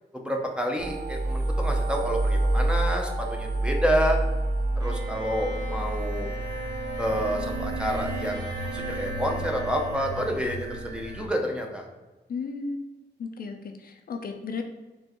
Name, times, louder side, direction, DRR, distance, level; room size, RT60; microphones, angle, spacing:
voice 1, 0.1-4.2 4.8-6.3 7.0-11.8, equal, 5° right, 1 dB, 0.6 m, -29 dB
sound 1, 0.8-11.3, right 2 dB, 75° right, 0.6 m, -29 dB
Bowed string instrument, 4.8-10.9, right 1 dB, 20° right, 1.0 m, -39 dB
voice 2, 12.3-12.9 13.2-14.6, left 4 dB, 60° left, 5 dB, 0.5 m, -34 dB
4.4 x 3.2 x 2.9 m, 1.1 s
wide cardioid pair, 125°, 18 cm